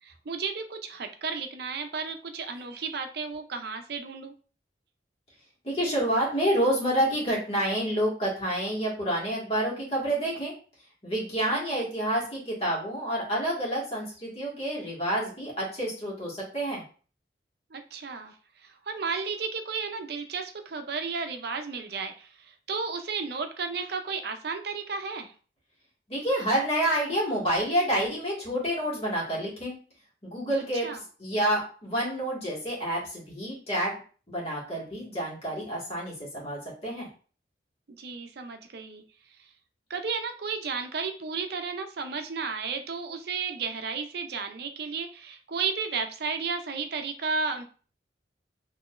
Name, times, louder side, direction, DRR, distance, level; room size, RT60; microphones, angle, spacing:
voice 1, 0.0-4.3 11.5-11.9 17.7-25.3 30.7-31.0 38.0-39.0 39.4-39.5 39.9-47.6, right 5 dB, 60° right, 7 dB, 0.5 m, -33 dB
voice 2, 5.6-10.5 11.0-16.8 26.1-29.7 30.2-30.9 31.2-34.0 34.3-37.1, right 1 dB, 35° left, -5 dB, 1.8 m, -28 dB
4.8 x 3.0 x 2.4 m, 0.39 s
head